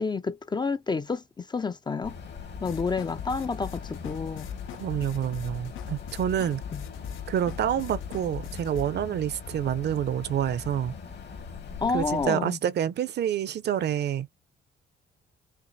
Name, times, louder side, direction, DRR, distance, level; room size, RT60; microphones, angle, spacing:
voice 1, 0.0-2.2 2.6-4.5 6.7-6.8 11.8-12.6, left 4 dB, 20° left, 0.4 m, -29 dB
sound 1, 2.0-12.3, left 5 dB, 60° left, 2.0 m, -41 dB
sound 2, 2.6-8.8, left 9 dB, 80° left, 0.7 m, -40 dB
voice 2, 4.8-6.6 7.3-10.9 11.9-14.3, right 10 dB, 60° right, 0.6 m, -28 dB
5.9 x 2.4 x 2.7 m
cardioid pair, 90°, 20 cm